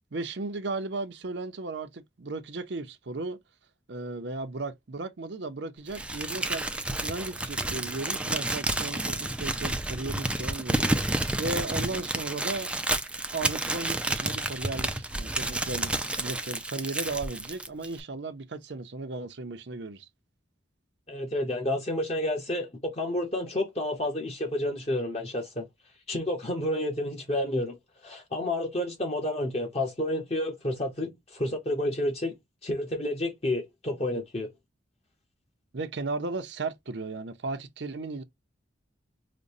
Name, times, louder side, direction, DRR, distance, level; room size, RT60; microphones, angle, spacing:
voice 1, 0.1-3.4 3.9-11.1 11.4-12.7 13.3-20.1 35.7-38.2, right 3 dB, 60° right, 0.7 m, -35 dB
Crumpling crinkling, 5.9-18.0, right 2 dB, 5° right, 0.4 m, -30 dB
voice 2, 21.1-25.6 26.1-27.8 28.0-32.3 32.6-34.5, left 1 dB, 30° left, 1.0 m, -30 dB
5.1 x 2.2 x 2.6 m
head